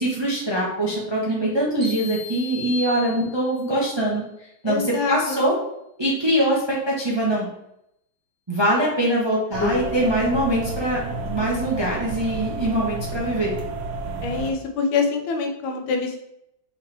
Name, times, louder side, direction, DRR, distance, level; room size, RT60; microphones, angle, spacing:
voice 1, 0.0-4.2 4.6-5.5 6.0-7.5 8.5-13.6, right 1 dB, 35° right, -4 dB, 0.4 m, -23 dB
sound 1, 1.8-3.7, left 4 dB, 15° right, 1.2 m, -36 dB
voice 2, 4.6-5.4 9.6-10.0 14.2-16.2, left 4 dB, 75° left, 4 dB, 1.4 m, -25 dB
sound 2, 9.5-14.5, right 3 dB, 80° right, 1.6 m, -31 dB
4.3 x 3.8 x 3.3 m, 0.80 s
omnidirectional pair, 2.2 m